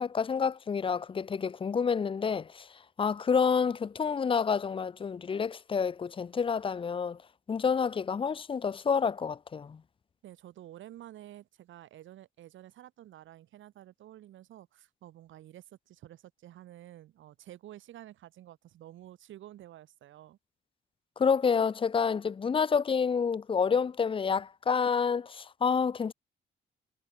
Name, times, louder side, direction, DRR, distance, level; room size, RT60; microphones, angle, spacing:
voice 1, 0.0-2.7 3.0-7.2 7.5-9.8 21.2-26.1, left 6 dB, 25° left, 0.5 m, -28 dB
voice 2, 10.2-20.4, right 13 dB, 75° right, 1.6 m, -50 dB
cardioid pair, 90°, 20 cm